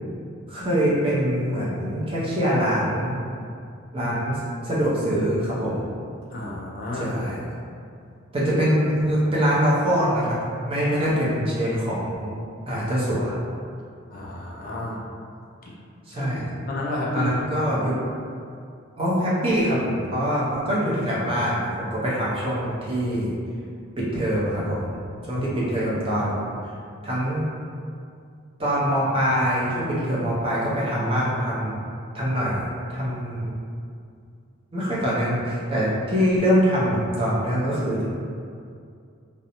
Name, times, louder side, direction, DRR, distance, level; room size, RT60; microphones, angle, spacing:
voice 1, 0.5-3.2 3.9-5.9 6.9-7.4 8.3-12.4 12.7-13.4 16.0-16.6 17.1-18.0 19.0-23.4 24.0-24.9 25.2-26.8 27.0-27.5 28.6-31.8 32.1-33.5 34.7-38.1, equal, 25° right, -8 dB, 0.5 m, -24 dB
voice 2, 6.3-7.1 14.1-15.0 15.6-15.7 16.2-16.4 16.7-17.7 25.4-25.7, left 1 dB, 40° left, -4 dB, 0.3 m, -31 dB
2.5 x 2.0 x 2.8 m, 2.4 s
head